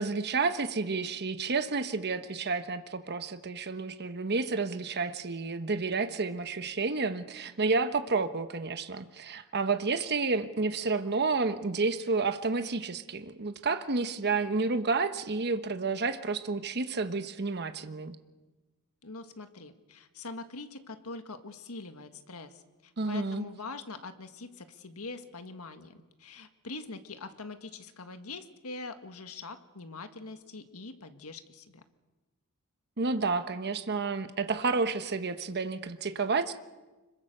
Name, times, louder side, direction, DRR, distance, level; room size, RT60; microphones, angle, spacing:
voice 1, 0.0-18.2 23.0-23.5 33.0-36.5, right 4 dB, 50° right, 9 dB, 1.1 m, -30 dB
voice 2, 19.0-31.8, left 3 dB, 75° left, 8 dB, 1.7 m, -43 dB
26.0 x 22.5 x 6.7 m, 1.2 s
head